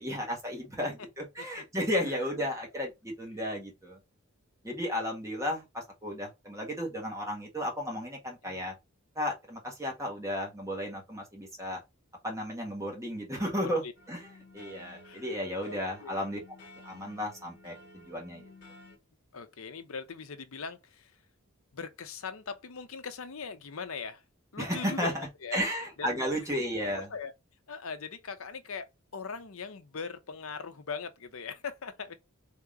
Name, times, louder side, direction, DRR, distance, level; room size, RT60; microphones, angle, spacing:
voice 1, 0.0-4.0 4.6-8.7 9.1-11.8 12.2-13.8 14.1-14.3 14.5-16.4 16.8-18.5 24.6-25.3 25.5-27.1, equal, 15° right, 1.4 m, -34 dB
sound 1, 13.9-19.0, left 1 dB, 50° left, 1.7 m, -53 dB
voice 2, 15.7-16.2 19.3-21.1 21.7-24.2 24.5-25.2 25.4-25.6 26.0-26.4 27.1-27.3 27.7-32.1, left 5 dB, 75° left, 0.7 m, -40 dB
3.7 x 2.9 x 3.6 m
head